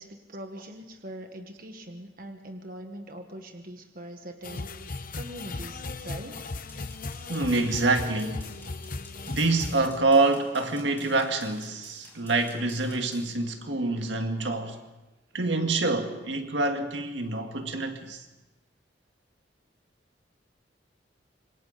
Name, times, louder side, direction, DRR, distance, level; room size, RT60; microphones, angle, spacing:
voice 1, 0.0-6.4, right 1 dB, 50° right, 1.6 m, -42 dB
sound 1, 4.4-9.9, left 3 dB, 50° left, 0.9 m, -37 dB
sound 2, 6.5-13.3, left 3 dB, 15° left, 4.8 m, -52 dB
voice 2, 7.3-8.5 9.3-14.8 15.3-18.2, right 3 dB, 80° right, 1.9 m, -26 dB
27.0 x 24.0 x 4.1 m
head